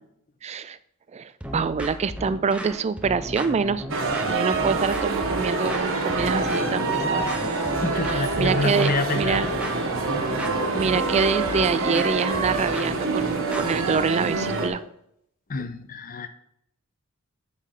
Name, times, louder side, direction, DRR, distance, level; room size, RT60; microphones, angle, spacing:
voice 1, 0.4-0.8 1.1-3.8 4.3-7.3 8.1-9.5 10.7-14.8 15.6-15.7, right 5 dB, 30° right, 15 dB, 0.3 m, -26 dB
sound 1, 1.4-14.1, equal, 5° right, 0.7 m, -35 dB
sound 2, 3.9-14.7, right 3 dB, 65° right, 1.2 m, -26 dB
voice 2, 7.8-9.5 15.5-16.3, left 2 dB, 40° left, 10 dB, 0.6 m, -27 dB
5.7 x 5.1 x 6.5 m, 0.74 s
head